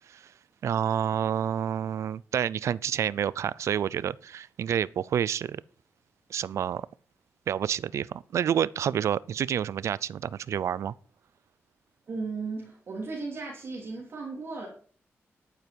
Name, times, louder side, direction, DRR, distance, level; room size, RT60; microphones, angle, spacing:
voice 1, 0.6-5.6 6.3-6.9 7.5-10.9, right 9 dB, 80° right, 0.4 m, -28 dB
voice 2, 12.1-14.7, right 4 dB, 50° right, 3.1 m, -35 dB
11.0 x 9.0 x 5.3 m
wide cardioid pair, 150°, 5 cm